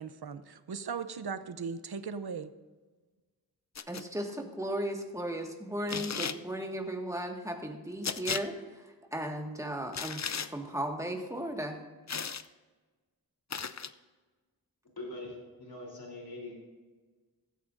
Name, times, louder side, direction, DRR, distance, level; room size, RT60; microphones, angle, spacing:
voice 1, 0.0-2.5, right 5 dB, 80° right, 11 dB, 0.7 m, -38 dB
sound 1, 3.8-4.0 5.9-6.4 8.0-8.4 9.9-10.5 12.1-12.5 13.5-13.9, left 6 dB, 45° left, 0.5 m, -35 dB
voice 2, 3.9-11.8, right 1 dB, 10° right, 2 dB, 1.7 m, -36 dB
voice 3, 15.0-16.5, left 2 dB, 70° left, -2 dB, 3.7 m, -43 dB
15.5 x 13.5 x 2.6 m, 1.4 s
wide cardioid pair, 65°, 38 cm